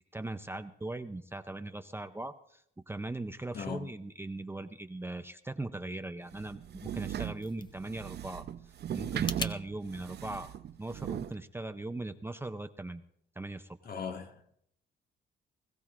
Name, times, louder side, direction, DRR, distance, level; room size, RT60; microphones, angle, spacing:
voice 1, 0.1-8.4 8.9-10.5 10.8-13.0 13.4-13.8, right 2 dB, 10° right, 0.6 m, -39 dB
voice 2, 3.5-3.9 13.8-14.6, left 6 dB, 50° left, 1.7 m, -39 dB
sound 1, 6.3-11.3, right 10 dB, 55° right, 0.7 m, -38 dB
sound 2, 6.9-9.6, left 3 dB, 20° left, 0.8 m, -43 dB
21.0 x 15.0 x 2.5 m
cardioid pair, 90°, 20 cm